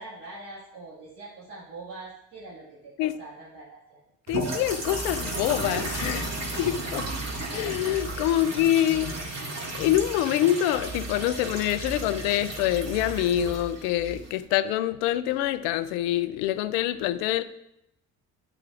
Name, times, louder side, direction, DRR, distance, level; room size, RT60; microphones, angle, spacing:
voice 1, 0.0-4.0, right 2 dB, 65° right, -6 dB, 2.0 m, -43 dB
voice 2, 4.3-7.1 7.5-9.3 9.8-17.4, left 12 dB, 75° left, 14 dB, 0.6 m, -26 dB
sound 1, 4.3-14.4, right 2 dB, 35° right, 2.1 m, -34 dB
9.8 x 5.8 x 2.5 m, 0.83 s
hypercardioid pair, 55°, 43 cm